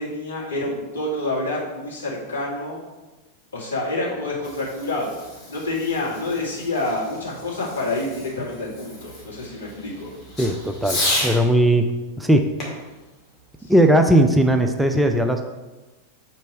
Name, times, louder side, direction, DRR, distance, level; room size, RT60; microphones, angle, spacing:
voice 1, 0.0-2.8 3.5-5.1 5.5-10.1 13.6-13.7, left 2 dB, 70° left, -5 dB, 2.1 m, -28 dB
Fireworks, 4.3-11.4 12.6-14.2, left 1 dB, 25° left, 2.3 m, -32 dB
voice 2, 10.4-11.9 12.2-12.4 13.7-15.5, right 1 dB, 5° right, 5 dB, 0.5 m, -18 dB
5.2 x 4.4 x 6.2 m, 1.1 s
figure-of-eight pair, 90°, 0 cm